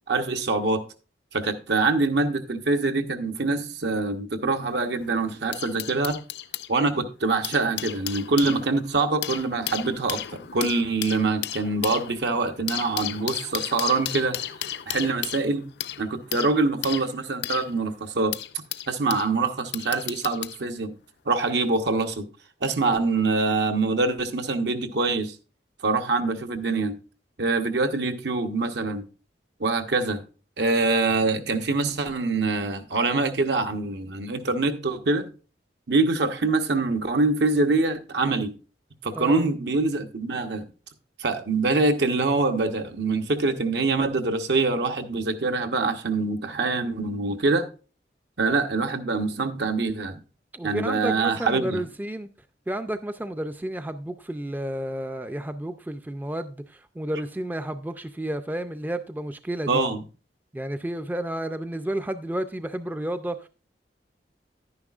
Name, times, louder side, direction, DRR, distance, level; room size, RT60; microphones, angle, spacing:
voice 1, 0.1-0.8 1.3-6.2 6.7-14.4 14.9-15.7 16.0-18.4 18.9-20.9 21.3-22.3 22.6-25.3 25.8-27.0 27.4-29.1 29.6-30.2 30.6-35.3 35.9-38.5 39.0-40.7 41.2-47.7 48.4-50.2 50.6-51.8 59.7-60.0, right 3 dB, 75° right, 0.9 m, -24 dB
sound 1, 4.6-6.7 7.3-19.3 19.7-20.6 21.5-21.7, left 12 dB, 70° left, 0.4 m, -34 dB
voice 2, 39.2-39.5 50.5-52.3 52.7-59.8 60.5-63.5, right 1 dB, 10° right, 0.3 m, -31 dB
10.5 x 9.7 x 2.4 m
head